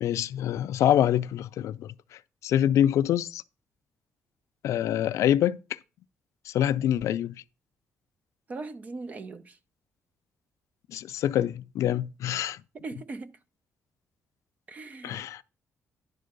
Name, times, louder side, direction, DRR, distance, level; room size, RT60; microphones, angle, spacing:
voice 1, 0.0-1.9 2.4-3.4 4.6-5.6 6.5-7.3 10.9-12.6 15.0-15.4, left 11 dB, 75° left, 0.4 m, -25 dB
voice 2, 8.5-9.6 12.7-13.3 14.7-15.2, right 3 dB, 30° right, 0.6 m, -39 dB
10.5 x 3.8 x 6.6 m
cardioid pair, 180°, 5 cm